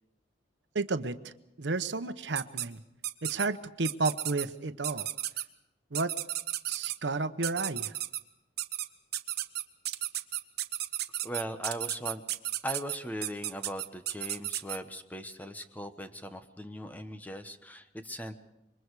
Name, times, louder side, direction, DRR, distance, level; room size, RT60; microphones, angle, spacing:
voice 1, 0.7-1.3 1.6-2.8 3.2-5.1 5.9-6.1 6.7-7.9, right 3 dB, 85° right, 11 dB, 0.9 m, -32 dB
sound 1, 2.3-2.7 3.0-3.5 3.8-4.4 4.8-5.4 5.9-7.0 7.4-8.2 8.6-8.9 9.1-14.8, right 13 dB, 60° right, 1.1 m, -33 dB
voice 2, 11.2-12.2 12.6-18.3, equal, 10° left, 8 dB, 1.2 m, -39 dB
26.5 x 23.0 x 4.8 m, 0.89 s
head